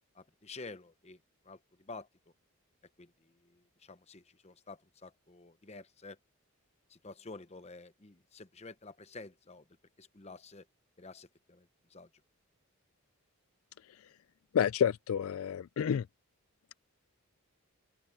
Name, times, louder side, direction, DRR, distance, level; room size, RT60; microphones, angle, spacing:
voice 1, 0.1-1.2 1.4-2.1 3.0-6.2 6.9-9.6 10.0-10.7 11.0-12.1, left 3 dB, 30° left, 0.8 m, -50 dB
voice 2, 14.5-16.1, left 8 dB, 70° left, 0.3 m, -29 dB
open air
head